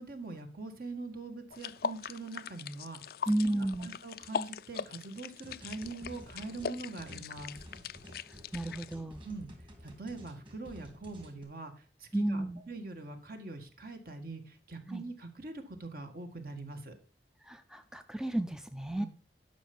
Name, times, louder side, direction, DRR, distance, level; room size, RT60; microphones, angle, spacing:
voice 1, 0.0-3.0 3.4-7.6 9.2-9.5 9.8-16.9 18.9-19.1, right 3 dB, 55° right, 6 dB, 1.8 m, -43 dB
sound 1, 1.5-9.0, left 6 dB, 55° left, 0.4 m, -41 dB
voice 2, 3.3-3.9 8.5-9.2 12.1-12.6 14.9-15.0 17.4-19.1, right 1 dB, 5° right, 9 dB, 0.4 m, -32 dB
sound 2, 5.4-11.4, equal, 30° right, 2.7 m, -52 dB
11.5 x 5.8 x 5.3 m, 0.37 s
head